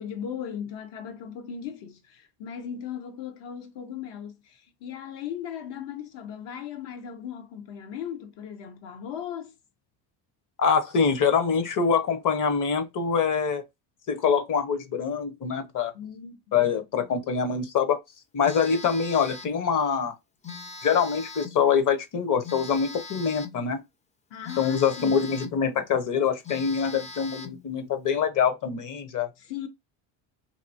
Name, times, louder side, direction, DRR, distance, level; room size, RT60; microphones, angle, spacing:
voice 1, 0.0-9.5 15.9-16.6 24.3-25.2 29.4-29.7, left 8 dB, 65° left, 1.1 m, -37 dB
voice 2, 10.6-13.6 14.1-15.9 16.5-18.0 18.3-20.1 20.8-23.8 24.6-29.3, left 6 dB, 40° left, 1.0 m, -24 dB
Telephone, 18.4-19.6 20.4-21.6 22.4-23.6 24.4-25.6 26.1-26.2 26.4-27.6, left 4 dB, 15° left, 0.4 m, -41 dB
2.9 x 2.7 x 2.6 m
supercardioid pair, 100°, 47 cm